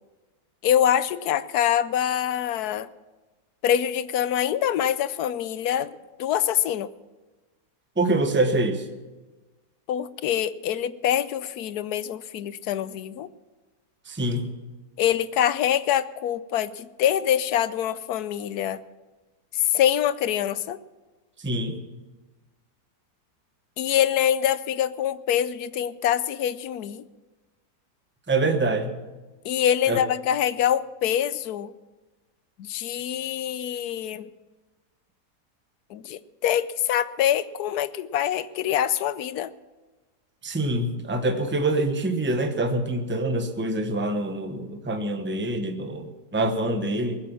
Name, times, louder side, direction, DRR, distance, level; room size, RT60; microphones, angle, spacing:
voice 1, 0.6-2.9 3.6-5.9 6.2-6.9 9.9-13.3 15.0-18.8 19.5-20.8 23.8-27.0 29.4-31.7 32.6-34.3 35.9-39.5, left 10 dB, 75° left, 16 dB, 1.1 m, -25 dB
voice 2, 8.0-8.8 14.1-14.5 21.4-21.8 28.3-28.9 29.9-30.0 40.4-47.2, right 2 dB, 10° right, 6 dB, 0.9 m, -25 dB
21.0 x 7.7 x 7.2 m, 1.2 s
omnidirectional pair, 1.7 m